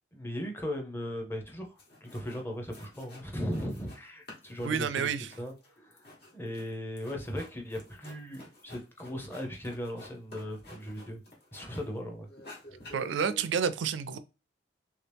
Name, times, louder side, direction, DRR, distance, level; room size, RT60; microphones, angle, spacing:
voice 1, 0.1-5.1 5.4-11.2 11.5-12.3, equal, 10° left, 0.7 m, -38 dB
sound 1, 1.5-1.6 1.8-2.4 2.7-4.0 4.3-12.0 12.3-13.6, left 1 dB, 55° left, 1.4 m, -50 dB
voice 2, 4.6-5.3 12.9-14.2, right 7 dB, 70° right, 0.4 m, -29 dB
3.3 x 2.8 x 3.4 m
head